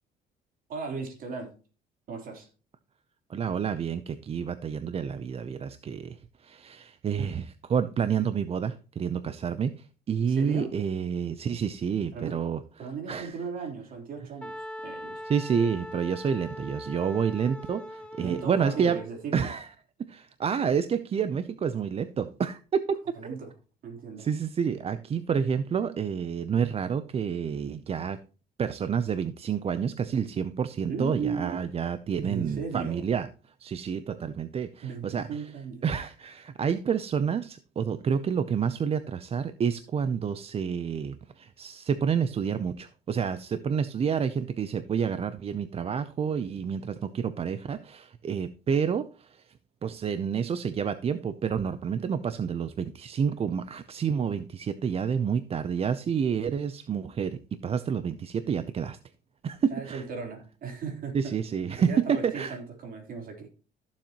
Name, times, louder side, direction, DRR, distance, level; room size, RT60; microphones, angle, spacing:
voice 1, 0.7-1.5 2.1-2.5 7.2-7.3 10.2-10.7 12.1-12.4 12.8-15.2 18.2-19.5 23.1-23.5 23.8-24.3 30.9-31.6 32.2-33.0 34.8-35.9 59.7-61.4 61.8-63.5, right 5 dB, 55° right, 3.7 m, -36 dB
voice 2, 3.3-12.6 13.1-13.4 15.2-19.0 19.3-19.7 20.0-23.0 23.2-23.3 24.2-28.2 28.6-33.3 33.6-35.3 35.8-49.5 49.8-59.0 59.4-60.0 61.1-62.6, right 7 dB, 35° right, 0.6 m, -29 dB
Wind instrument woodwind instrument, 14.4-19.0, left 1 dB, 5° left, 1.4 m, -41 dB
14.0 x 7.3 x 3.0 m
cardioid pair, 110°, 17 cm